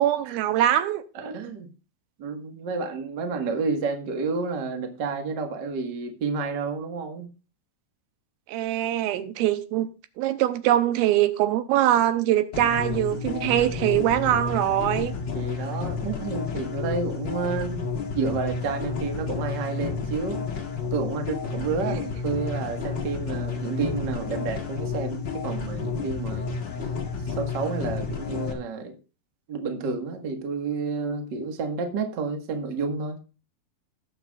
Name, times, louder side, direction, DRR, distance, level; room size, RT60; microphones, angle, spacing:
voice 1, 0.0-1.0 8.5-9.9 10.2-15.1 21.9-22.0, right 12 dB, 85° right, 2.5 m, -23 dB
voice 2, 1.1-1.7 2.2-7.3 15.3-17.9 18.1-20.4 20.9-26.5 27.2-28.9 29.5-33.2, right 4 dB, 50° right, 1.3 m, -30 dB
sound 1, 12.5-28.5, left 5 dB, 50° left, 1.5 m, -31 dB
19.5 x 6.8 x 2.4 m
omnidirectional pair, 4.4 m